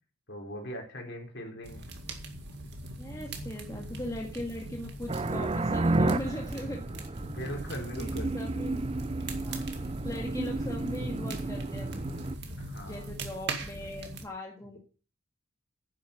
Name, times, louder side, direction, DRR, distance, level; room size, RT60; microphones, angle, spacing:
voice 1, 0.3-1.9 3.3-3.4 6.0-6.1 7.2-8.3 12.6-13.1, equal, 50° left, 1 dB, 4.2 m, -40 dB
sound 1, 1.6-14.2, right 2 dB, 50° right, 2.1 m, -41 dB
voice 2, 3.0-7.0 8.0-8.8 9.4-12.2 12.8-14.8, left 1 dB, 15° left, 0 dB, 1.8 m, -39 dB
sound 2, 5.1-12.4, right 2 dB, 25° right, 0.5 m, -32 dB
10.5 x 9.3 x 7.0 m, 0.37 s
head